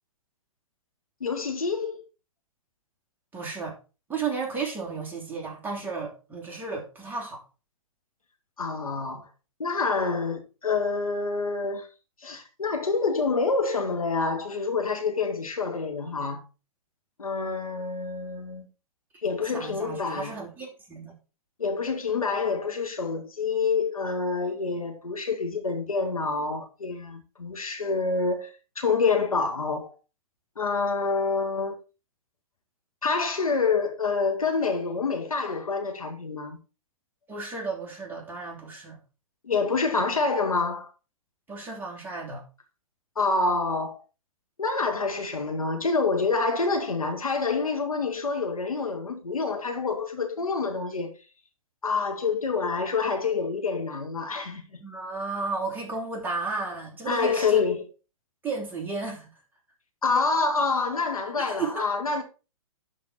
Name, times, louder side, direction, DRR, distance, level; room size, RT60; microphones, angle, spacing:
voice 1, 1.2-2.0 8.6-9.3 9.6-11.9 12.2-16.4 17.2-18.7 19.2-20.3 21.6-28.5 28.8-29.9 30.6-31.8 33.0-36.6 39.4-40.9 43.2-44.0 44.6-51.1 51.8-54.8 57.1-57.8 60.0-62.2, left 4 dB, 90° left, 2.0 m, -27 dB
voice 2, 3.3-3.8 4.1-7.4 19.5-21.2 37.3-39.0 41.5-42.4 54.8-57.6 58.4-59.3 61.4-61.8, right 4 dB, 10° right, 2.9 m, -33 dB
12.0 x 4.2 x 4.3 m
hypercardioid pair, 125°, 18 cm